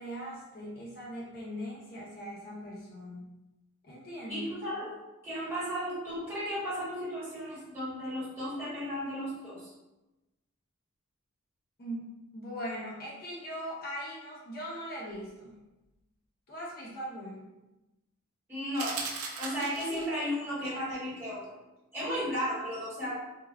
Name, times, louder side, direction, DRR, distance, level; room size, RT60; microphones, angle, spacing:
voice 1, 0.0-3.3 3.8-4.5 11.8-15.6 16.5-17.5, equal, 45° left, -4 dB, 0.5 m, -40 dB
voice 2, 4.3-9.7 18.5-19.0 19.4-21.6 21.9-23.2, equal, 10° right, -10 dB, 1.2 m, -34 dB
sound 1, 18.8-20.2, right 4 dB, 70° right, 0.4 m, -37 dB
3.3 x 2.2 x 2.2 m, 1.0 s
head